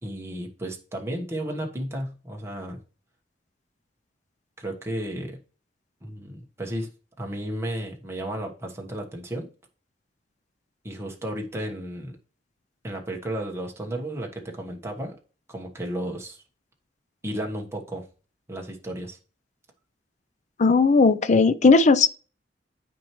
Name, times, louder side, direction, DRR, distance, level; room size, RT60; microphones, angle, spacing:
voice 1, 0.0-2.8 4.6-5.4 6.0-6.9 7.2-9.5 10.8-12.2 12.8-15.2 15.5-16.4 17.2-18.0 18.5-19.2, right 1 dB, 15° right, 1.2 m, -33 dB
voice 2, 20.6-22.1, left 4 dB, 40° left, 0.5 m, -17 dB
9.7 x 4.5 x 3.0 m
head